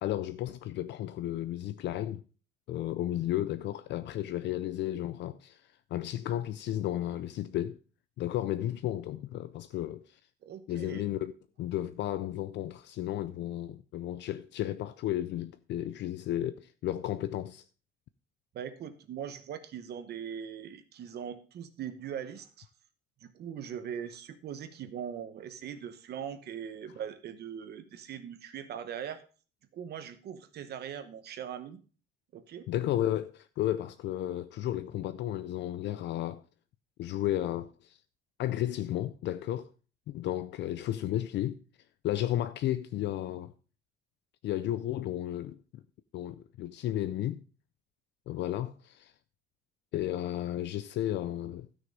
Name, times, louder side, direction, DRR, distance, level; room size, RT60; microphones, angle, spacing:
voice 1, 0.0-2.2 2.7-7.8 8.2-10.2 10.7-11.3 11.6-17.6 32.7-36.4 37.0-38.0 38.4-39.7 40.1-41.6 42.0-43.5 44.4-45.8 46.1-47.4 48.3-49.1 49.9-51.7, left 13 dB, 60° left, 0.4 m, -33 dB
voice 2, 10.4-11.0 18.5-22.7 23.2-29.2 29.7-31.8 32.3-32.7, right 8 dB, 50° right, 1.0 m, -41 dB
13.0 x 6.4 x 5.1 m
cardioid pair, 170°, 21 cm